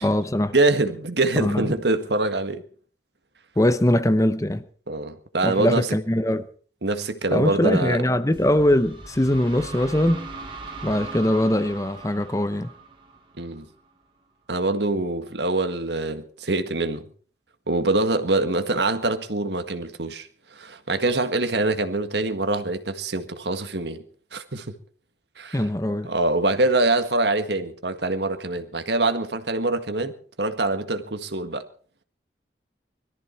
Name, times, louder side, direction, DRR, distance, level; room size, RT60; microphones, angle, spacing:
voice 1, 0.0-0.5 1.4-1.7 3.6-4.6 5.4-6.5 7.3-10.3 10.8-12.7 25.5-26.1, left 1 dB, 20° left, 0.8 m, -22 dB
voice 2, 0.5-2.6 4.9-5.9 6.8-8.0 13.4-13.7 14.5-17.0 17.7-20.3 20.5-24.0 24.3-24.7 25.4-25.6 26.0-30.1 30.4-31.6, right 2 dB, 70° right, 1.7 m, -24 dB
sound 1, 8.3-14.0, right 3 dB, 30° right, 2.9 m, -40 dB
22.0 x 14.0 x 4.4 m
head